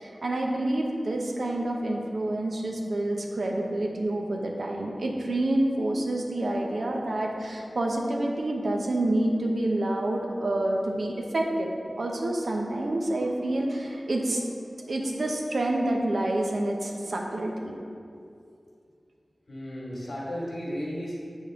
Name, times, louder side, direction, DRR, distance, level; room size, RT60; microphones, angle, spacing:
voice 1, 0.0-11.7 12.0-14.5 14.8-17.8, right 1 dB, 80° right, 0 dB, 0.8 m, -28 dB
voice 2, 19.5-21.1, equal, 80° left, -5 dB, 1.6 m, -34 dB
7.1 x 5.4 x 3.6 m, 2.5 s
cardioid pair, 45°, 0 cm